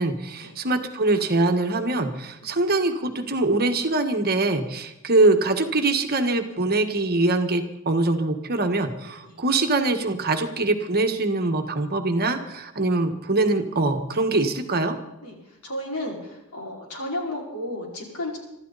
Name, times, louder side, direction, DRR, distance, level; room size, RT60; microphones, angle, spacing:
voice 1, 0.0-15.0, right 2 dB, 45° right, 5 dB, 1.5 m, -23 dB
voice 2, 15.6-18.4, left 1 dB, 75° left, -2 dB, 5.3 m, -33 dB
25.0 x 13.0 x 4.1 m, 0.91 s
head